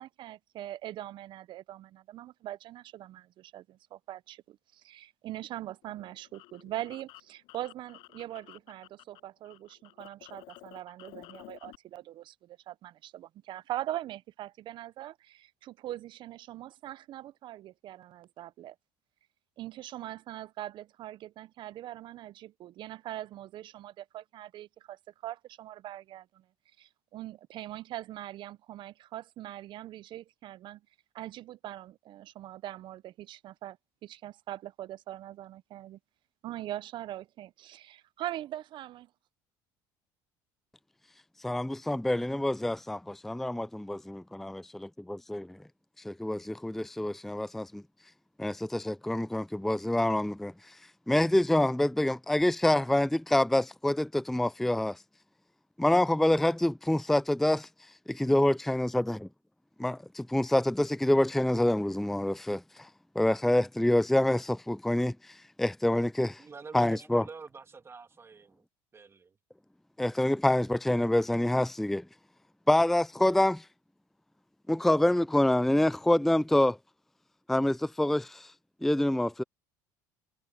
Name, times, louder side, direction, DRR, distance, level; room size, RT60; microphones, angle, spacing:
voice 1, 0.0-18.7 19.6-26.4 26.8-30.8 31.1-36.0 36.4-39.1, right 13 dB, 55° right, 0.7 m, -42 dB
sound 1, 5.8-9.2 9.4-11.8, left 21 dB, 75° left, 6.9 m, -52 dB
voice 2, 41.4-44.2 45.1-45.5 46.0-47.8 48.4-50.5 51.1-55.0 55.8-57.7 58.2-59.3 59.8-62.9 63.2-65.1 65.6-66.4 66.7-67.2 70.0-72.0 72.7-73.6 74.7-76.8 77.5-78.5 78.8-79.4, left 1 dB, 5° left, 0.4 m, -26 dB
voice 3, 66.4-68.6 68.9-69.4, right 5 dB, 25° right, 1.9 m, -46 dB
supercardioid pair, 90°, 9 cm